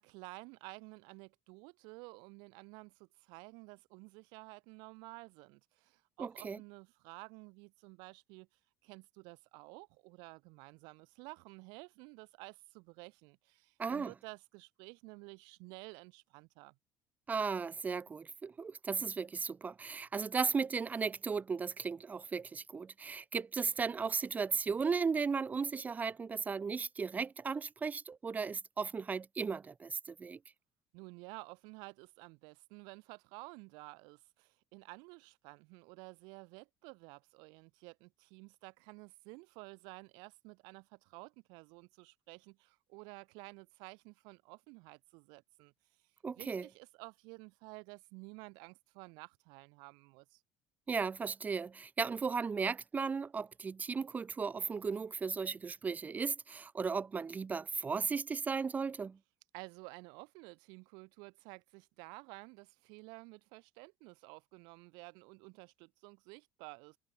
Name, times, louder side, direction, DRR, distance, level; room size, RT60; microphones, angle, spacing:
voice 1, 0.0-8.5 8.8-16.8 30.9-45.7 46.4-50.4 59.5-67.0, right 30 dB, 80° right, 4.1 m, -52 dB
voice 2, 6.2-6.6 13.8-14.1 17.3-30.4 46.2-46.7 50.9-59.2, right 5 dB, 20° right, 1.4 m, -36 dB
cardioid pair, 135°, 7 cm